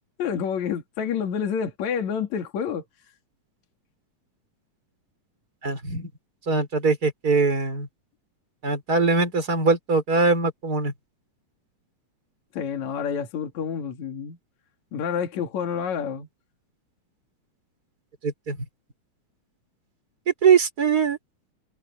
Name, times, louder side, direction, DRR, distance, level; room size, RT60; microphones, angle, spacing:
voice 1, 0.2-2.8 12.5-14.4 14.9-16.3, left 7 dB, 65° left, 3.4 m, -28 dB
voice 2, 5.6-6.1 6.5-7.9 8.6-10.9 18.2-18.6 20.4-21.2, right 4 dB, 30° right, 5.2 m, -22 dB
omnidirectional pair, 3.6 m